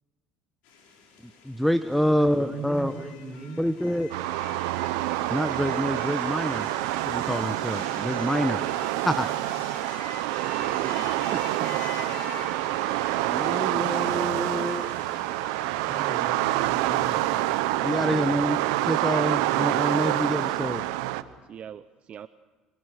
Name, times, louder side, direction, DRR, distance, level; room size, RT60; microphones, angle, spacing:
sound 1, 0.6-18.0, left 5 dB, 75° left, 5.1 m, -45 dB
voice 1, 1.4-3.0 3.6-4.1 5.3-6.7 7.0-8.6 9.1-9.3 13.3-14.9 17.8-20.8, equal, ahead, 10 dB, 1.0 m, -27 dB
voice 2, 2.3-3.6 15.9-17.3, right 2 dB, 15° right, 4 dB, 5.3 m, -39 dB
sound 2, 4.1-21.2, right 16 dB, 85° right, 0.8 m, -27 dB
voice 3, 10.3-11.8 21.5-22.3, right 8 dB, 50° right, 14 dB, 0.6 m, -40 dB
25.0 x 21.5 x 6.6 m, 1.3 s
supercardioid pair, 80°, 3 cm